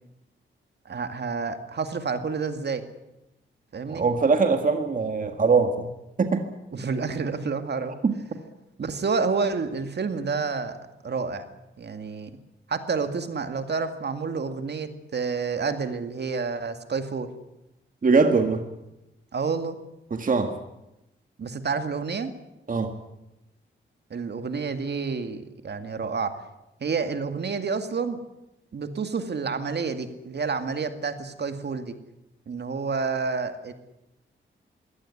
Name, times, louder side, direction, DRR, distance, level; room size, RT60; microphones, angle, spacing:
voice 1, 0.9-2.8 3.7-4.1 6.7-8.0 8.8-10.8 11.0-11.5 11.8-12.3 12.7-17.3 19.3-19.8 21.4-22.3 24.1-26.4 26.8-28.2 28.7-31.9 32.5-33.7, right 5 dB, 60° right, 8 dB, 2.2 m, -29 dB
voice 2, 3.9-5.9 6.2-6.4 8.0-8.1 18.0-18.6 20.1-20.6 22.7-22.9, right 4 dB, 45° right, 6 dB, 1.8 m, -22 dB
22.5 x 17.5 x 9.9 m, 0.91 s
wide cardioid pair, 95°, 20 cm